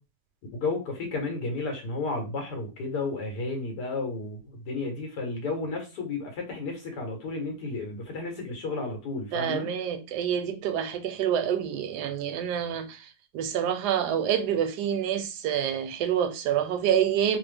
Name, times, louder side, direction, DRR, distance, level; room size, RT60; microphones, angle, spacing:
voice 1, 0.5-9.7, left 3 dB, 85° left, 1.5 m, -32 dB
voice 2, 9.3-13.1 13.3-17.4, right 9 dB, 80° right, 1.1 m, -27 dB
3.3 x 2.0 x 3.4 m
omnidirectional pair, 1.7 m